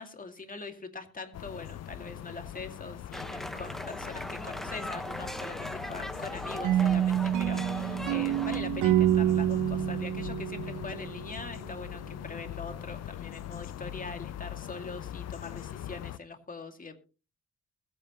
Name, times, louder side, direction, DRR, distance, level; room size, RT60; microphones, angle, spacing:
voice 1, 0.0-16.9, left 3 dB, 30° left, 6 dB, 2.4 m, -43 dB
sound 1, 1.3-16.2, left 11 dB, 55° left, 0.6 m, -41 dB
sound 2, 3.1-8.6, equal, ahead, 1.3 m, -39 dB
sound 3, 6.6-11.5, right 12 dB, 90° right, 0.9 m, -27 dB
21.0 x 8.9 x 3.1 m, 0.34 s
cardioid pair, 90°, 30 cm